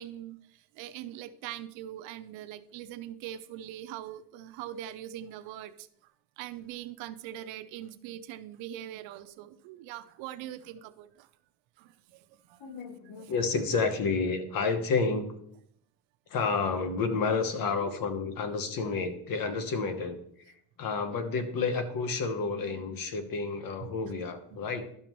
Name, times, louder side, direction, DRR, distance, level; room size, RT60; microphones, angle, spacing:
voice 1, 0.0-6.1 6.4-11.3 11.8-12.7 13.2-13.3 23.8-24.1 24.5-24.6, right 12 dB, 75° right, 13 dB, 0.7 m, -42 dB
voice 2, 12.6-15.3 16.3-20.2 20.8-24.9, left 4 dB, 45° left, 9 dB, 1.1 m, -30 dB
12.0 x 5.6 x 3.1 m, 0.68 s
cardioid pair, 125°, 46 cm